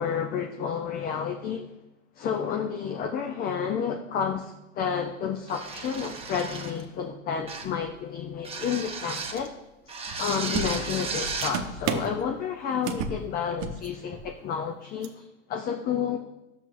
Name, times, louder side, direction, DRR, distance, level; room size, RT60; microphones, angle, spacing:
voice 1, 0.0-1.7 2.2-9.5 10.2-16.2, left 7 dB, 25° left, 5 dB, 0.4 m, -30 dB
sound 1, 5.5-6.8 7.5-7.8 8.4-9.5 9.9-11.6, right 4 dB, 15° right, 1.0 m, -34 dB
sound 2, 10.1-10.2 10.5-12.2 12.8-13.2 13.5-13.9 14.1-14.3 15.0-15.1, right 5 dB, 45° right, 0.9 m, -32 dB
9.6 x 7.1 x 2.5 m, 0.99 s
hypercardioid pair, 100°, 41 cm